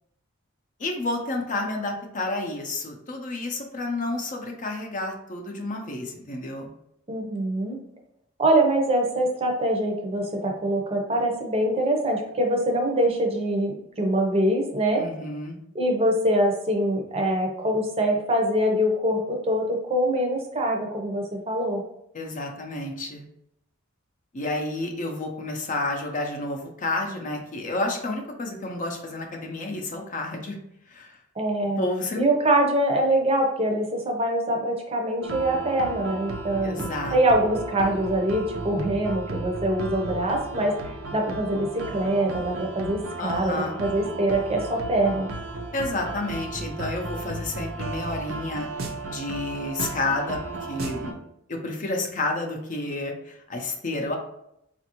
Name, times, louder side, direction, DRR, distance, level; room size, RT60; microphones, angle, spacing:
voice 1, 0.8-6.7 15.0-15.6 22.1-23.2 24.3-30.6 30.9-31.1 31.8-32.3 36.6-37.2 43.2-43.8 45.7-48.7 49.1-51.2 51.5-54.2, left 2 dB, 40° left, 2 dB, 0.6 m, -30 dB
voice 2, 7.1-7.8 8.4-15.0 15.7-21.8 31.4-31.8 32.2-45.3, right 1 dB, 30° right, 2 dB, 0.6 m, -24 dB
sound 1, 35.2-51.1, right 2 dB, 85° right, 0.6 m, -35 dB
4.2 x 2.5 x 2.9 m, 0.78 s
head